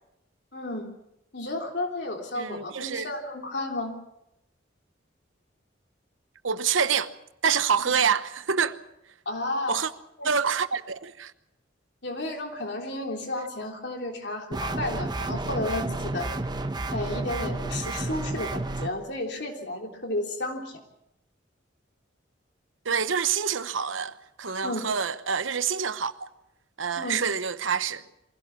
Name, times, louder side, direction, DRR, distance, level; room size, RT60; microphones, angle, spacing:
voice 1, 0.5-0.9 1.3-4.0 7.8-8.0 9.2-9.8 10.2-10.3 12.0-16.3 16.9-20.7 24.6-24.9 26.9-27.2, left 2 dB, 60° left, 3.4 m, -32 dB
voice 2, 2.3-3.1 6.4-7.1 7.4-8.8 9.7-9.9 10.2-11.3 22.8-26.3 26.8-28.0, right 6 dB, 90° right, 1.0 m, -26 dB
sound 1, 14.5-18.9, right 2 dB, 20° right, 0.9 m, -31 dB
23.5 x 16.5 x 7.3 m
head